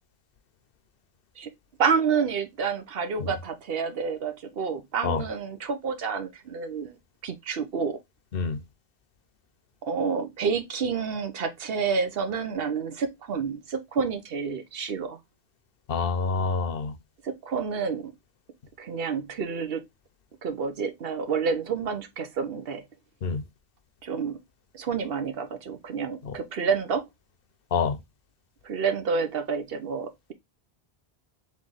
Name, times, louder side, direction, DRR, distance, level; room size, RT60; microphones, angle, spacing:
voice 1, 1.8-7.0 7.2-8.0 9.8-15.2 17.2-18.1 18.8-19.8 20.4-22.8 24.0-24.4 24.7-27.1 28.6-30.3, right 5 dB, 70° right, 1.0 m, -29 dB
voice 2, 8.3-8.6 15.9-17.0 23.2-23.5 26.2-26.3 27.7-28.0, left 5 dB, 65° left, 0.9 m, -27 dB
3.4 x 3.4 x 3.9 m
omnidirectional pair, 1.0 m